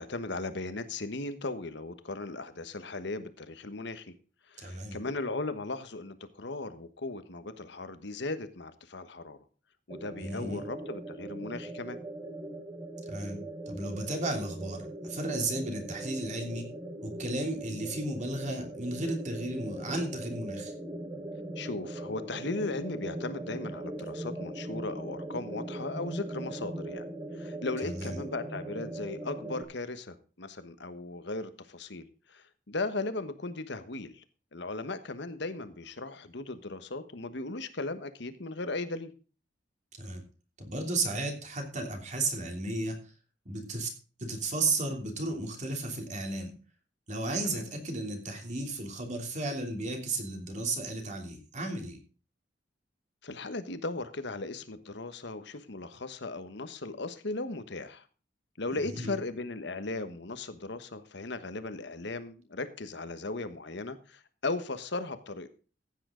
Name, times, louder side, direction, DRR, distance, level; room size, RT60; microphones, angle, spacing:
voice 1, 0.0-4.1 4.5-9.4 9.9-12.0 21.6-27.1 27.3-34.2 34.5-39.1 47.4-47.6 53.2-58.0 58.6-65.5, left 2 dB, 65° left, 11 dB, 1.3 m, -37 dB
voice 2, 4.6-5.0 10.2-10.6 13.1-16.7 17.0-20.7 27.8-28.2 40.0-40.2 40.6-43.0 43.4-43.9 44.2-46.6 47.1-52.0 58.7-59.2, right 2 dB, 40° right, 3 dB, 3.1 m, -34 dB
sound 1, 9.9-29.6, right 1 dB, 20° right, 1.6 m, -40 dB
15.5 x 9.0 x 3.8 m, 0.36 s
head